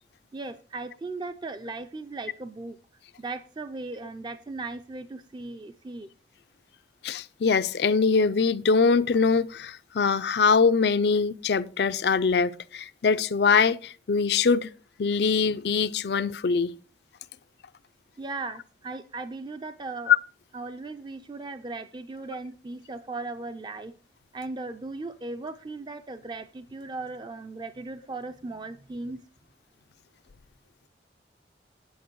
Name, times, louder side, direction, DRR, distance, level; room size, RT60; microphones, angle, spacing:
voice 1, 0.3-2.8 3.2-6.1 18.2-20.1 20.5-23.9 24.3-29.2, right 3 dB, 25° right, 0.4 m, -37 dB
voice 2, 7.0-14.7 15.0-16.7 20.1-20.2, left 5 dB, 65° left, 0.4 m, -23 dB
9.1 x 8.5 x 4.6 m
head